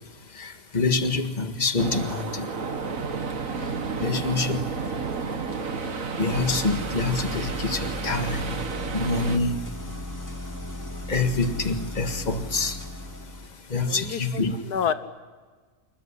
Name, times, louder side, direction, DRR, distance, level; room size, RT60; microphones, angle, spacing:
voice 1, 0.4-2.5 4.0-4.6 6.2-8.6 8.9-9.6 11.1-12.8 13.7-14.5, left 3 dB, 30° left, 7 dB, 1.8 m, -26 dB
sound 1, 1.8-9.4, right 5 dB, 60° right, 1.9 m, -31 dB
sound 2, 6.3-13.5, left 1 dB, 10° left, 3.3 m, -36 dB
voice 2, 13.8-14.9, left 8 dB, 80° left, 12 dB, 1.6 m, -29 dB
26.5 x 22.5 x 9.9 m, 1.4 s
omnidirectional pair, 1.7 m